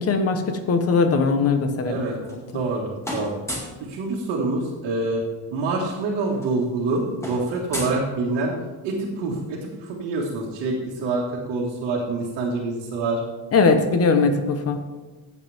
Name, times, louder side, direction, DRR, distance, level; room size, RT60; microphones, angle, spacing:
voice 1, 0.0-2.0 13.5-14.8, left 4 dB, 35° left, 7 dB, 1.0 m, -20 dB
voice 2, 1.8-2.1 2.5-3.4 3.8-5.2 5.5-8.5 8.8-13.2, right 3 dB, 65° right, -4 dB, 1.9 m, -26 dB
sound 1, 2.0-2.7 3.0-3.8 5.2-5.3 5.5-5.8 6.0-8.7, left 1 dB, 5° left, 2.0 m, -35 dB
14.5 x 8.1 x 3.5 m, 1.2 s
cardioid pair, 170°, 44 cm